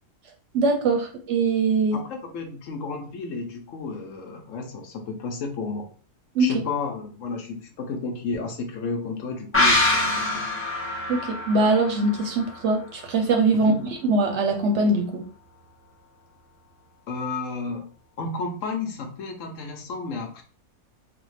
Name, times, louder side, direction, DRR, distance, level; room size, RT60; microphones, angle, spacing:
voice 1, 0.5-2.0 6.3-6.6 11.1-13.7 14.1-15.3, right 3 dB, 65° right, 3 dB, 0.8 m, -22 dB
voice 2, 1.9-5.9 6.4-10.5 13.5-13.8 17.1-17.9 18.2-20.4, left 4 dB, 70° left, 3 dB, 1.0 m, -32 dB
sound 1, 9.5-13.0 13.3-13.4, left 2 dB, 10° left, 0.8 m, -25 dB
3.4 x 2.2 x 3.1 m, 0.40 s
omnidirectional pair, 1.5 m